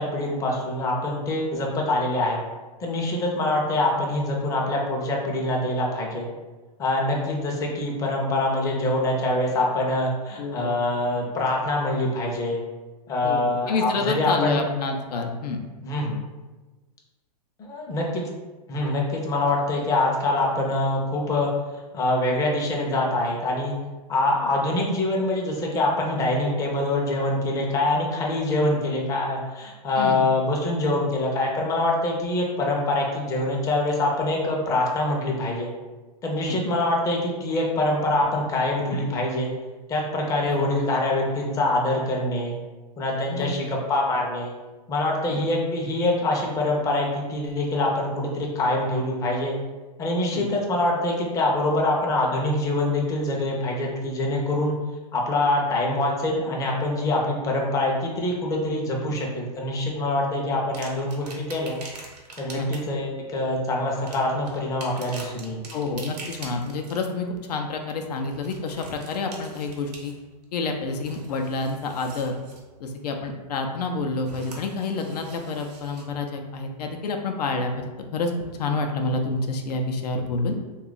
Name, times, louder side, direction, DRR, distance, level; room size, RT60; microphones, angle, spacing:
voice 1, 0.0-2.4 2.8-6.3 6.8-12.6 13.1-14.6 15.8-16.3 17.6-18.2 18.7-21.5 21.9-23.7 24.1-35.7 36.2-39.5 39.9-42.5 43.0-44.5 44.9-49.6 50.0-54.7 55.1-61.8 62.4-65.6, left 2 dB, 15° left, -2 dB, 0.5 m, -24 dB
voice 2, 10.4-10.8 13.2-15.6 30.0-30.3 36.4-36.6 40.5-40.8 43.3-43.7 45.3-45.4 50.3-50.5 62.5-62.7 65.7-70.1 70.5-72.4 72.8-80.6, left 3 dB, 70° left, 3 dB, 0.5 m, -28 dB
sound 1, 60.7-63.0 63.9-67.1 68.2-70.4 70.8-72.6 74.2-76.0 76.9-77.0, right 3 dB, 75° right, 0.9 m, -44 dB
2.8 x 2.3 x 3.8 m, 1.2 s
hypercardioid pair, 130°, 21 cm